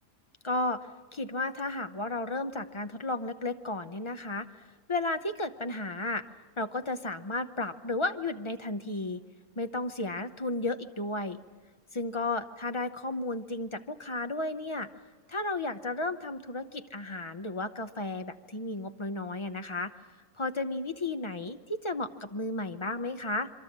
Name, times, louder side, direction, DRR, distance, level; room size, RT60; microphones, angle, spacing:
voice 1, 0.4-6.2 6.6-9.2 9.6-11.4 11.9-14.9 15.3-19.9 20.4-23.5, left 2 dB, 30° left, 8 dB, 0.6 m, -33 dB
27.0 x 23.0 x 7.4 m, 1.4 s
omnidirectional pair, 1.5 m